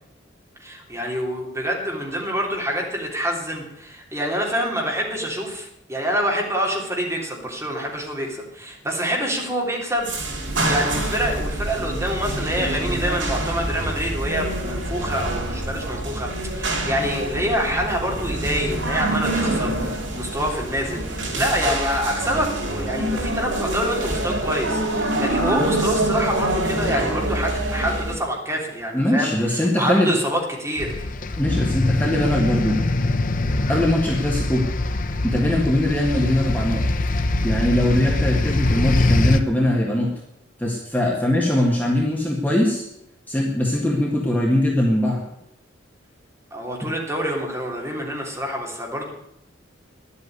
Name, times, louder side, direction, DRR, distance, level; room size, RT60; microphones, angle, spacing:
voice 1, 0.6-31.1 46.5-49.1, equal, 15° right, -1 dB, 3.3 m, -26 dB
sound 1, 10.0-28.2, right 1 dB, 80° right, 4.6 m, -26 dB
voice 2, 28.9-30.2 31.4-32.8 33.7-34.6 35.2-36.8 37.4-40.1 40.6-42.8 43.3-45.2, left 1 dB, 10° left, -2 dB, 1.8 m, -21 dB
sound 2, 30.8-39.4, left 2 dB, 45° left, 0.9 m, -23 dB
11.5 x 8.4 x 9.6 m, 0.78 s
head